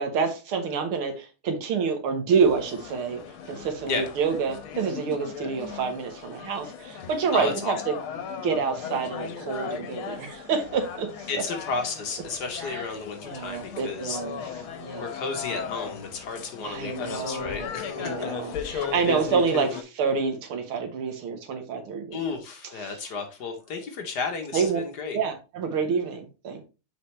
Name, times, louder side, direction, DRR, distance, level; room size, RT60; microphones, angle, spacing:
voice 1, 0.0-7.9 8.4-11.4 12.6-12.9 13.2-14.4 14.8-15.1 16.6-17.7 18.0-22.2 22.8-22.9 24.5-24.8 25.1-26.6, right 5 dB, 80° right, 6 dB, 2.1 m, -28 dB
sound 1, 2.3-19.8, left 7 dB, 80° left, 1.7 m, -37 dB
voice 2, 7.3-7.7 11.3-14.2 15.0-18.8 22.1-25.2, left 4 dB, 55° left, 4 dB, 1.5 m, -33 dB
6.7 x 5.1 x 3.2 m, 0.30 s
omnidirectional pair, 2.3 m